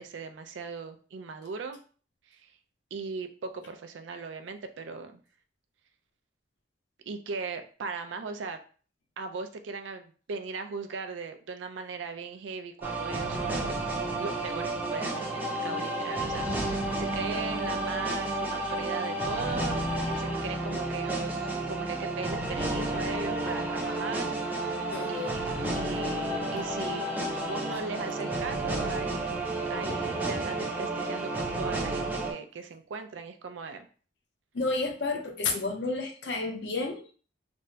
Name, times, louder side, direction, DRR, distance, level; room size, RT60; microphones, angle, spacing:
voice 1, 0.0-1.8 2.3-2.5 2.9-5.2 7.1-8.6 9.2-19.8 20.2-24.3 25.1-25.5 25.7-27.1 27.4-29.2 29.7-33.9, right 4 dB, 90° right, 7 dB, 0.4 m, -38 dB
sound 1, 12.8-32.3, right 2 dB, 10° right, 0.5 m, -31 dB
voice 2, 24.9-25.4 34.5-37.0, left 3 dB, 70° left, 2 dB, 0.6 m, -31 dB
3.4 x 2.1 x 2.6 m, 0.40 s
head